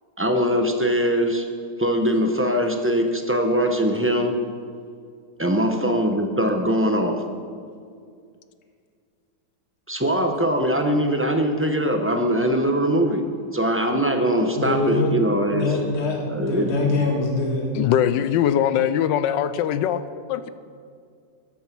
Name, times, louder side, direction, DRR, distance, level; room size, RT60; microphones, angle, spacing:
voice 1, 0.2-1.5 1.8-4.4 5.4-7.2 9.9-13.2 13.5-15.7 16.3-16.8, equal, 15° right, 4 dB, 0.5 m, -22 dB
voice 2, 14.6-15.1 15.5-17.7, left 3 dB, 40° left, 0 dB, 1.7 m, -24 dB
voice 3, 17.7-20.5, left 10 dB, 90° left, 13 dB, 1.3 m, -22 dB
14.0 x 10.5 x 6.0 m, 2.2 s
omnidirectional pair, 1.9 m